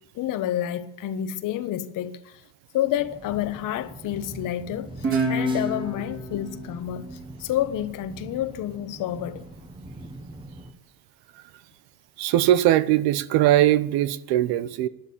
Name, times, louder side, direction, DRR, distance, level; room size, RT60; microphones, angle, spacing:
voice 1, 0.1-2.4 2.7-7.0 7.4-9.4, left 12 dB, 50° left, 1.2 m, -29 dB
sound 1, 2.9-10.7, right 2 dB, 10° right, 1.3 m, -43 dB
Guitar, 5.0-8.3, right 1 dB, 30° right, 3.1 m, -29 dB
voice 2, 12.2-14.9, right 13 dB, 65° right, 0.9 m, -20 dB
12.0 x 11.5 x 8.7 m
cardioid pair, 155°, 41 cm